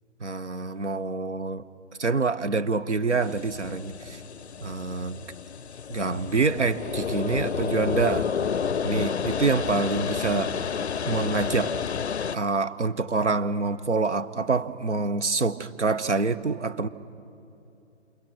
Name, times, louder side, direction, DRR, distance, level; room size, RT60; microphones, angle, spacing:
voice 1, 0.2-1.6 2.0-4.2 4.6-5.2 5.9-8.3 8.8-10.8 11.0-11.7 12.3-16.9, right 4 dB, 70° right, 13 dB, 1.2 m, -26 dB
sound 1, 3.2-12.4, left 7 dB, 60° left, 0.5 m, -30 dB
28.5 x 28.0 x 6.2 m, 2.8 s
figure-of-eight pair, 140°, 37 cm